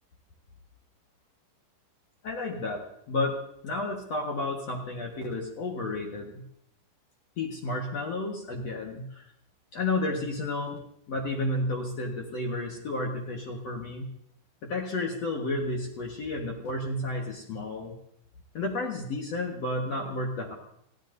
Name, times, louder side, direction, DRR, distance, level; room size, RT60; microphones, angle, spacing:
voice 1, 2.2-6.4 7.4-9.3 9.7-10.8 11.1-14.1 14.6-17.9 18.5-20.5, left 2 dB, 70° left, -1 dB, 1.5 m, -32 dB
26.0 x 16.0 x 2.7 m, 0.76 s
omnidirectional pair, 5.5 m